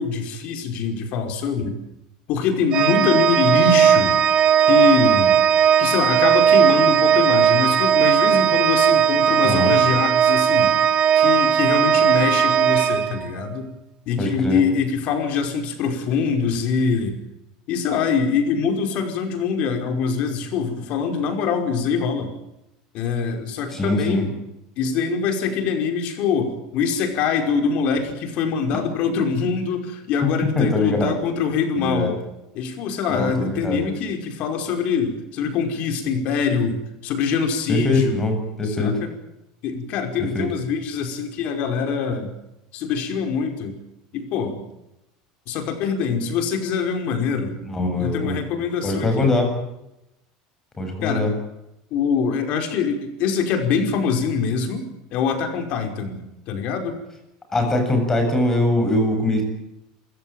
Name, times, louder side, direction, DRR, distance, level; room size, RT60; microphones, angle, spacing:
voice 1, 0.0-1.8 2.3-4.2 4.7-5.4 5.8-10.8 11.1-13.7 14.1-17.2 17.7-22.3 22.9-24.3 24.8-32.2 32.6-38.3 38.6-39.1 39.6-42.3 42.7-43.8 44.1-44.6 45.5-47.6 48.0-49.3 51.0-51.3 51.9-56.2 56.5-57.0, left 6 dB, 50° left, 5 dB, 5.4 m, -24 dB
Organ, 2.7-13.6, right 9 dB, 35° right, 1.9 m, -17 dB
voice 2, 9.4-9.7 14.2-14.6 23.7-24.2 30.6-31.2 31.8-32.1 33.1-33.8 37.7-38.9 40.3-40.5 47.6-48.4 48.8-49.5 50.8-51.3 57.5-59.4, left 2 dB, 15° left, 4 dB, 7.9 m, -22 dB
28.0 x 16.5 x 9.2 m, 0.88 s
supercardioid pair, 145°, 3 cm